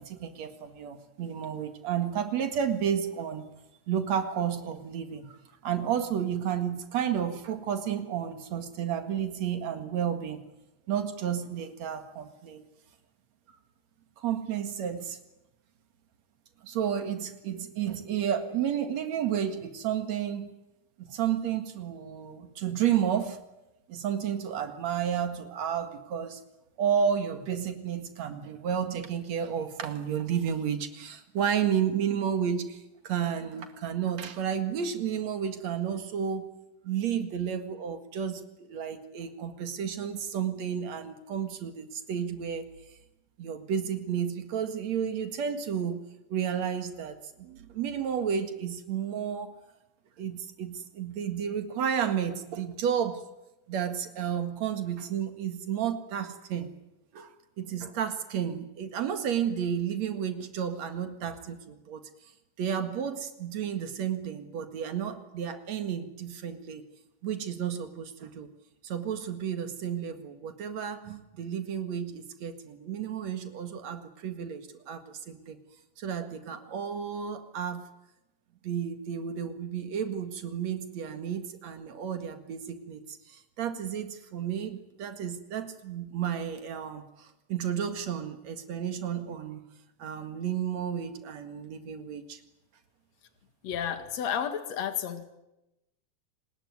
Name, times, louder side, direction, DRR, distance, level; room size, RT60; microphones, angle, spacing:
voice 1, 0.0-3.5 3.9-5.4 5.6-10.4 10.9-12.6 14.2-15.2 16.6-20.5 21.0-23.4 23.9-26.4 26.8-36.5 36.8-38.4 38.7-42.6 43.4-46.0 46.3-49.5 50.2-53.2 53.7-56.7 57.1-57.3 57.6-62.0 62.6-66.8 67.2-68.5 68.8-75.6 76.0-77.9 78.6-89.6 90.0-92.4, right 8 dB, 55° right, 8 dB, 2.9 m, -32 dB
voice 2, 93.6-95.2, left 8 dB, 55° left, 8 dB, 2.8 m, -31 dB
29.5 x 20.0 x 9.5 m, 0.95 s
omnidirectional pair, 3.9 m